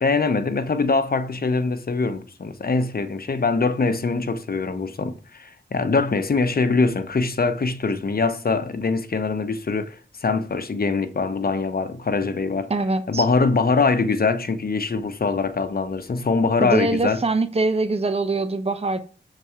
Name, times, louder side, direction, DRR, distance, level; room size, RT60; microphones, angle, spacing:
voice 1, 0.0-12.7 13.1-17.2, left 4 dB, 50° left, 0.9 m, -23 dB
voice 2, 12.7-13.2 16.6-19.0, right 3 dB, 30° right, 0.8 m, -23 dB
6.9 x 4.1 x 4.9 m
cardioid pair, 60°, 20 cm